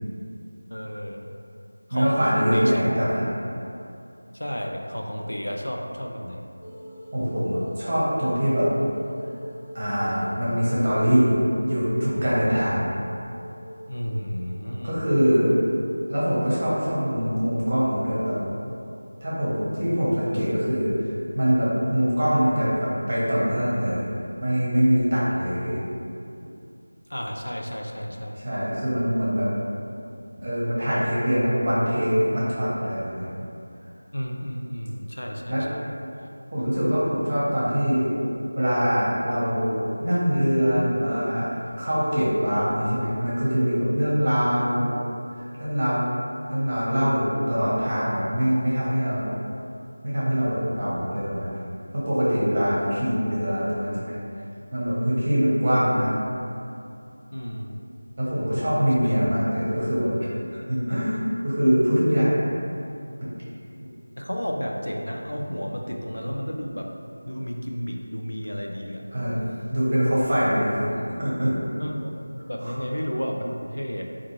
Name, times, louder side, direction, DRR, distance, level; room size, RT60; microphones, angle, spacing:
voice 1, 0.7-1.3 1.9-2.7 4.3-6.4 13.9-15.0 27.1-28.4 34.1-35.9 57.3-57.8 62.2-62.3 64.2-66.9 67.3-69.1 71.8-72.1 72.4-74.0, equal, 80° left, 1 dB, 0.3 m, -32 dB
voice 2, 1.9-3.3 7.1-8.7 9.7-12.8 14.8-15.5 16.1-18.4 19.2-21.1 21.3-24.1 24.4-25.8 28.4-29.5 30.4-33.3 35.5-35.6 36.5-38.1 38.5-44.9 45.6-46.0 46.5-49.4 50.0-51.6 51.9-54.2 54.7-56.2 58.2-60.1 60.7-62.3 63.2-63.3 69.1-70.9 71.2-71.5 72.6-72.8, equal, 35° right, -8 dB, 0.7 m, -23 dB
sound 1, 6.6-14.6, equal, 15° left, 0.6 m, -42 dB
2.3 x 2.2 x 2.9 m, 2.6 s
figure-of-eight pair, 170°, 0 cm